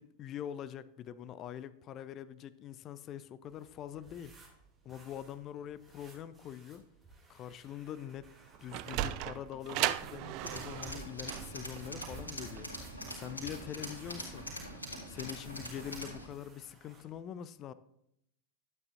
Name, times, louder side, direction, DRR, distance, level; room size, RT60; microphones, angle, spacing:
voice 1, 0.0-4.3 4.8-6.8 7.3-8.3 8.6-14.5 15.0-17.7, left 10 dB, 30° left, 0.5 m, -44 dB
sound 1, 3.4-17.2, right 2 dB, 20° right, 2.5 m, -57 dB
Sliding door, 8.4-13.6, right 14 dB, 40° right, 0.4 m, -37 dB
Tools, 10.4-16.3, equal, 80° left, 2.5 m, -43 dB
12.0 x 8.7 x 2.5 m
figure-of-eight pair, 90°, 0 cm